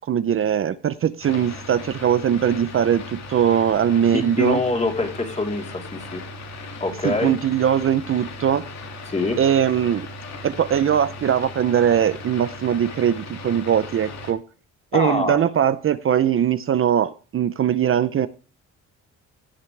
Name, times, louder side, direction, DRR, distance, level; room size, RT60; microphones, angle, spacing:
voice 1, 0.1-4.6 7.0-8.6 9.4-10.1 10.4-14.4 14.9-18.3, right 9 dB, 45° right, 13 dB, 0.6 m, -21 dB
sound 1, 1.2-14.3, left 2 dB, 60° left, 2.5 m, -37 dB
voice 2, 4.1-6.2 6.8-7.3 9.1-9.4 14.9-15.4, left 2 dB, 25° left, 1 dB, 3.5 m, -24 dB
16.5 x 6.8 x 3.3 m, 0.35 s
cardioid pair, 90°, 30 cm